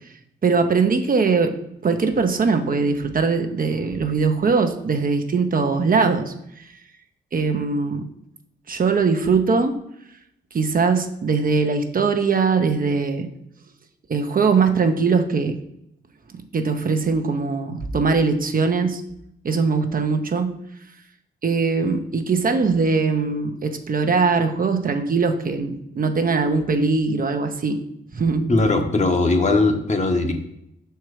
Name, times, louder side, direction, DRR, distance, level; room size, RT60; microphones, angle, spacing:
voice 1, 0.4-1.5 1.8-6.3 7.3-8.0 8.7-9.8 10.5-13.3 14.1-15.5 16.5-19.0 19.4-20.5 21.4-27.8 28.1-28.5, right 4 dB, 45° right, 6 dB, 0.8 m, -21 dB
voice 2, 28.5-30.3, left 2 dB, 35° left, 4 dB, 1.1 m, -19 dB
5.8 x 4.5 x 4.8 m, 0.76 s
cardioid pair, 80°, 20 cm